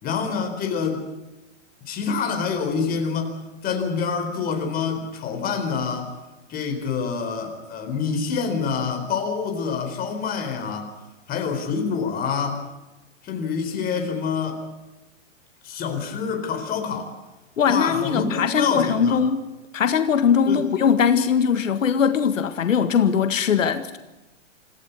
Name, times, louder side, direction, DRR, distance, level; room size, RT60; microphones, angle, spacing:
voice 1, 0.0-1.0 1.9-6.1 6.5-10.9 11.3-12.6 13.2-14.6 15.6-17.1 17.6-19.2 20.5-20.7, left 5 dB, 25° left, 4.3 m, -26 dB
voice 2, 17.6-19.4 19.7-24.0, left 7 dB, 85° left, 1.8 m, -20 dB
27.0 x 15.0 x 8.3 m
hypercardioid pair, 145°, 38 cm